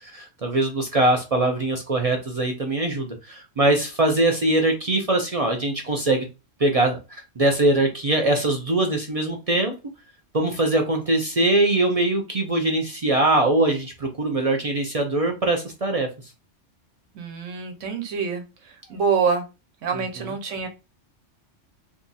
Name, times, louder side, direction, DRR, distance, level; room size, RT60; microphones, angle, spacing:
voice 1, 0.0-6.3 6.6-9.7 10.3-16.1 20.2-20.3, right 2 dB, 55° right, 3 dB, 0.4 m, -22 dB
voice 2, 17.1-18.4 18.9-19.4 19.8-20.7, right 5 dB, 80° right, 5 dB, 1.1 m, -25 dB
2.7 x 2.4 x 3.9 m, 0.28 s
omnidirectional pair, 1.3 m